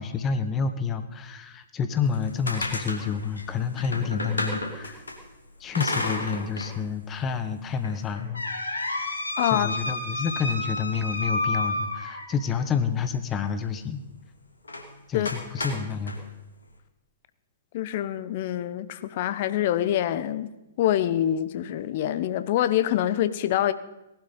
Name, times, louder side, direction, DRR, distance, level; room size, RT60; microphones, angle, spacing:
voice 1, 0.0-5.0 5.6-8.4 9.5-14.0 15.1-16.1, left 6 dB, 20° left, 1.3 m, -29 dB
sound 1, 2.1-5.2 5.7-6.7 7.1-7.2 7.8-12.5 14.6-14.9 15.2-16.2, left 2 dB, 75° left, 2.8 m, -31 dB
voice 2, 9.4-9.7 15.1-15.3 17.7-23.7, left 12 dB, 45° left, 0.9 m, -25 dB
18.5 x 12.0 x 5.4 m
figure-of-eight pair, 115°, 0 cm